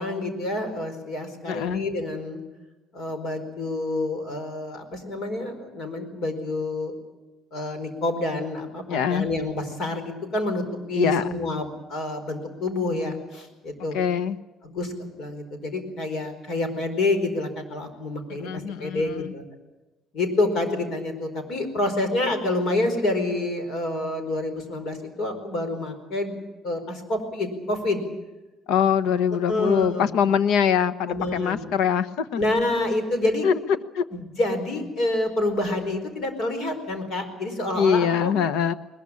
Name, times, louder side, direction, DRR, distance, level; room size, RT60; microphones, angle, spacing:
voice 1, 0.0-2.4 2.9-6.9 7.5-14.0 14.6-19.4 20.1-26.4 26.6-28.0 29.5-30.1 31.1-31.6 32.4-33.5 34.1-38.3, left 2 dB, 50° left, 8 dB, 4.8 m, -28 dB
voice 2, 1.4-1.8 8.9-9.3 10.9-11.2 13.9-14.4 18.4-19.3 28.7-32.4 33.4-33.5 33.9-34.0 37.7-38.7, left 7 dB, 85° left, 13 dB, 1.0 m, -23 dB
21.0 x 21.0 x 8.5 m, 1.1 s
cardioid pair, 165°, 0 cm